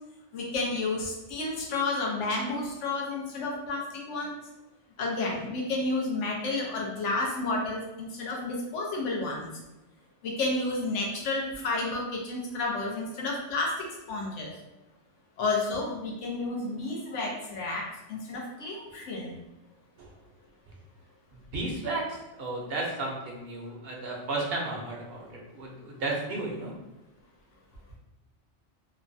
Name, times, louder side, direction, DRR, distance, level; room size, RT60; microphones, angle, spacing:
voice 1, 0.3-4.3 5.0-9.5 10.2-14.5 15.4-19.4, left 2 dB, 90° left, -1 dB, 1.0 m, -31 dB
voice 2, 21.3-26.7, right 2 dB, 60° right, -1 dB, 0.8 m, -34 dB
3.1 x 2.2 x 2.5 m, 1.0 s
omnidirectional pair, 1.2 m